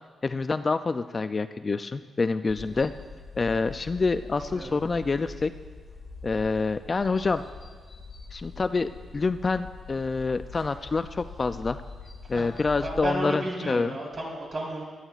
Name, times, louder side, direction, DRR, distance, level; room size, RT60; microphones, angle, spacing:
voice 1, 0.2-2.9 3.4-5.5 6.2-7.4 8.3-11.8 12.3-14.0, left 4 dB, 30° left, 10 dB, 0.3 m, -27 dB
sound 1, 2.5-13.1, left 4 dB, 45° left, 1.5 m, -43 dB
voice 2, 12.8-14.8, right 1 dB, 45° right, -3 dB, 3.9 m, -33 dB
19.0 x 12.5 x 2.4 m, 1.5 s
cardioid pair, 120°, 0 cm